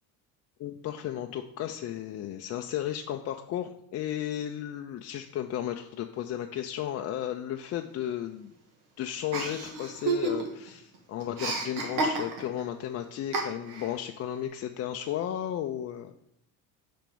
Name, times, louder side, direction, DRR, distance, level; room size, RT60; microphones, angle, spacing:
voice 1, 0.6-8.5 9.0-16.3, left 11 dB, 35° left, 5 dB, 0.4 m, -34 dB
Chuckle chortle, 9.3-10.7 10.9-12.6 13.3-13.9, right 3 dB, 75° right, 1.7 m, -30 dB
5.2 x 4.4 x 5.2 m, 0.75 s
supercardioid pair, 85°, 45 cm